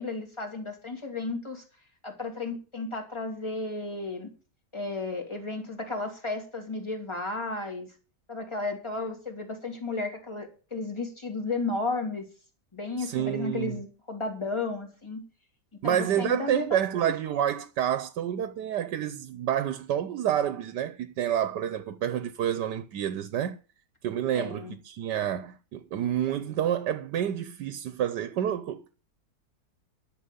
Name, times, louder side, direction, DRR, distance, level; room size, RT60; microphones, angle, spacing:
voice 1, 0.0-1.6 2.0-4.3 4.7-7.9 8.3-12.3 12.7-15.2 15.8-16.7 17.0-17.1 24.3-24.8, left 3 dB, 15° left, 2.8 m, -33 dB
voice 2, 13.0-13.8 15.8-23.5 24.0-28.9, right 10 dB, 90° right, 1.4 m, -29 dB
11.5 x 6.8 x 8.3 m
omnidirectional pair, 1.8 m